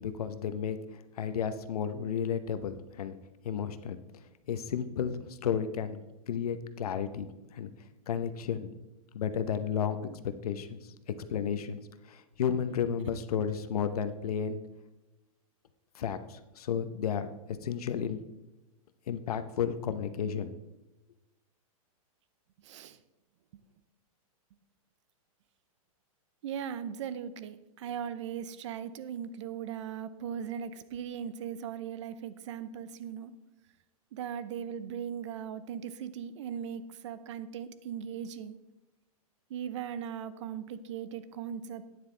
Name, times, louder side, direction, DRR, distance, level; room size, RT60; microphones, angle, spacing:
voice 1, 0.0-3.1 3.4-4.0 4.5-6.0 6.3-7.7 8.1-8.7 9.1-10.9 11.3-11.8 12.1-14.6 15.9-17.4 17.6-18.2 19.1-20.6, left 7 dB, 80° left, 10 dB, 0.9 m, -33 dB
voice 2, 22.6-23.0 26.4-33.3 34.1-38.6 39.5-41.8, right 8 dB, 50° right, 15 dB, 0.7 m, -38 dB
11.5 x 9.6 x 3.4 m, 1.0 s
hypercardioid pair, 160°, 19 cm